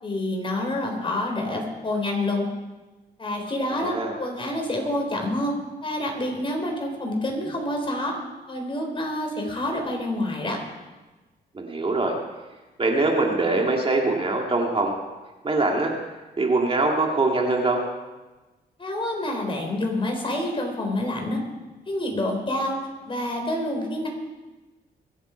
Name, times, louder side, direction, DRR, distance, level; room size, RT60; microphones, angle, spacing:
voice 1, 0.0-2.5 3.2-5.5 5.8-8.1 8.5-10.6 18.8-21.4 21.9-22.8 23.1-24.1, left 1 dB, 30° left, 1 dB, 4.0 m, -27 dB
voice 2, 3.7-4.1 11.5-12.1 12.8-15.0 15.4-15.9 16.4-17.8, right 2 dB, 30° right, 0 dB, 2.2 m, -23 dB
23.0 x 7.9 x 5.1 m, 1.2 s
cardioid pair, 90°, 17 cm